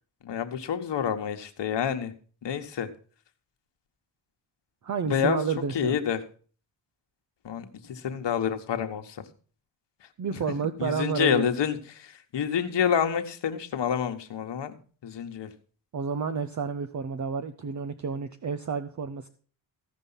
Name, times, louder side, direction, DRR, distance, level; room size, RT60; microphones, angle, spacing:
voice 1, 0.2-2.1 2.4-2.9 5.0-5.4 5.7-6.2 7.4-9.2 10.3-10.4 10.8-14.7 15.0-15.5, left 8 dB, 65° left, 6 dB, 1.3 m, -28 dB
voice 2, 4.8-6.0 10.2-11.5 15.9-19.3, right 6 dB, 40° right, 9 dB, 0.7 m, -30 dB
15.0 x 5.4 x 5.6 m, 0.42 s
cardioid pair, 75°, 46 cm